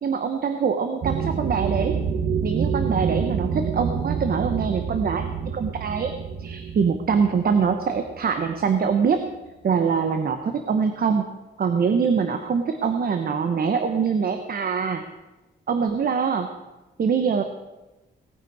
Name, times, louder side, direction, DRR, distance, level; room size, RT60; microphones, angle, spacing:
voice 1, 0.0-2.0 2.4-6.1 6.4-9.2 9.6-11.3 11.6-15.0 15.7-16.5 17.0-17.4, right 6 dB, 55° right, 7 dB, 1.0 m, -24 dB
sound 1, 1.0-8.9, right 6 dB, 90° right, 1.1 m, -27 dB
18.0 x 9.4 x 4.8 m, 1.1 s
wide cardioid pair, 135°, 19 cm